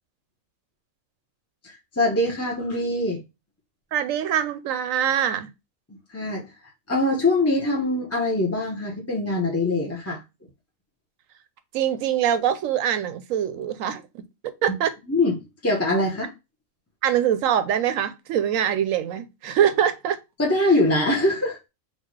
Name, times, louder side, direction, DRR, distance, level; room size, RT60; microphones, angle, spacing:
voice 1, 1.6-3.2 5.9-10.2 14.7-14.8 15.1-15.4 15.6-16.3 20.4-21.7, left 2 dB, 15° left, 0.6 m, -23 dB
voice 2, 3.9-5.5 11.7-14.9 17.0-20.2, right 9 dB, 70° right, 1.0 m, -24 dB
4.1 x 2.3 x 4.6 m
omnidirectional pair, 1.4 m